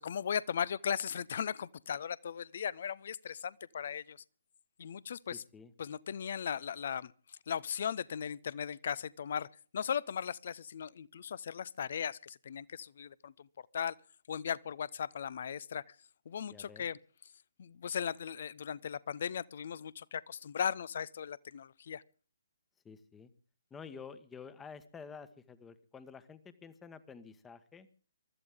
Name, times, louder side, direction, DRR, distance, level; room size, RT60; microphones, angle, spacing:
voice 1, 0.0-4.2 4.8-5.4 5.8-9.5 9.7-13.5 13.7-13.9 14.3-15.8 16.3-17.0 17.6-22.0, left 8 dB, 50° left, 0.7 m, -37 dB
voice 2, 5.3-5.7 16.5-16.9 22.8-23.3 23.7-27.9, left 6 dB, 10° left, 1.2 m, -50 dB
23.5 x 13.5 x 3.7 m
figure-of-eight pair, 135°, 0 cm